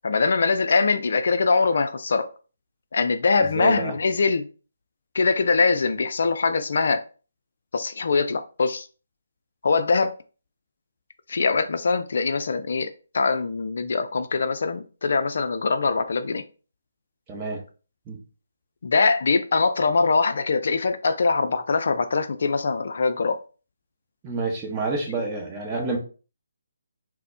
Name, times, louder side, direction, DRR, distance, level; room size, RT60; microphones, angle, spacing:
voice 1, 0.0-2.3 2.9-4.5 5.1-7.0 7.7-8.9 9.6-10.1 11.3-16.4 18.8-23.4, left 4 dB, 55° left, 0.3 m, -22 dB
voice 2, 3.4-4.0 17.3-17.6 18.1-18.2 24.2-26.0, right 3 dB, 20° right, 0.9 m, -29 dB
4.0 x 2.0 x 2.7 m
figure-of-eight pair, 145°, 0 cm